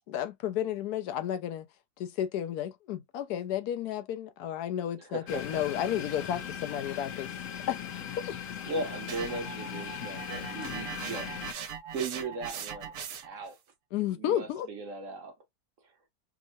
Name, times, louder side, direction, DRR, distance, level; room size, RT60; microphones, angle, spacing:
voice 1, 0.1-1.7 2.0-7.3 7.7-7.8 8.3-8.4 13.9-14.7, left 10 dB, 80° left, 1.1 m, -32 dB
voice 2, 5.1-5.6 8.7-11.3 11.9-12.9 13.2-13.6 14.1-15.3, right 3 dB, 60° right, 1.1 m, -37 dB
sound 1, 5.3-11.5, left 8 dB, 65° left, 1.0 m, -39 dB
sound 2, 9.1-13.5, right 7 dB, 75° right, 1.3 m, -40 dB
3.6 x 2.0 x 2.6 m
omnidirectional pair, 1.7 m